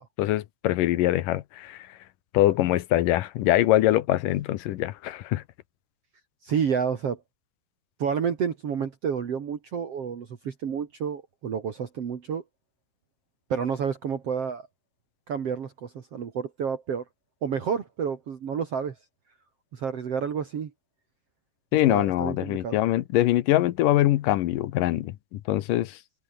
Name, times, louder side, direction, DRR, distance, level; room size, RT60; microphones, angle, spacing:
voice 1, 0.2-1.9 2.3-5.4 21.7-26.0, left 14 dB, 80° left, 2.6 m, -23 dB
voice 2, 6.4-7.2 8.0-12.4 13.5-14.7 15.3-17.0 17.4-18.9 19.7-20.7 21.9-22.8, right 7 dB, 50° right, 2.8 m, -30 dB
omnidirectional pair, 3.8 m